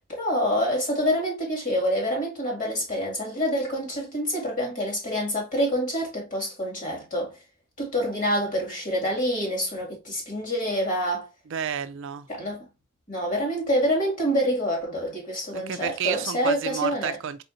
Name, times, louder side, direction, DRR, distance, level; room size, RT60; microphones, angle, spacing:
voice 1, 0.1-7.4 7.8-11.3 12.3-12.6 13.1-17.2, equal, 35° left, 2.3 m, -27 dB
voice 2, 11.5-12.3 15.5-17.4, right 8 dB, 60° right, 0.4 m, -30 dB
4.2 x 4.0 x 2.6 m
head